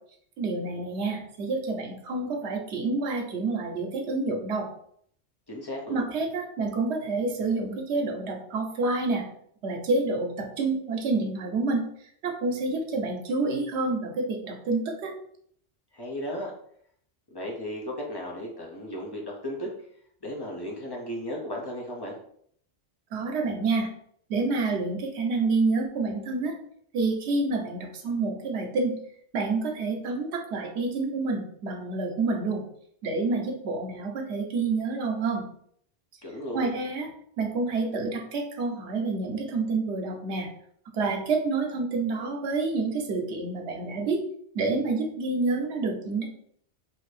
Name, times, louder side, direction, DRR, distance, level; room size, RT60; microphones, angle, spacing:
voice 1, 0.4-4.7 5.9-9.3 9.6-11.8 12.2-15.1 23.1-23.9 24.3-26.6 26.9-28.9 29.3-32.6 33.0-35.4 36.5-37.1 37.4-40.5 40.9-44.2 44.5-46.3, right 3 dB, 90° right, 2 dB, 0.9 m, -28 dB
voice 2, 5.5-6.0 15.9-16.5 17.3-19.7 20.2-22.1 36.2-36.7, equal, 35° left, -2 dB, 0.4 m, -35 dB
2.6 x 2.5 x 3.2 m, 0.65 s
omnidirectional pair, 1.1 m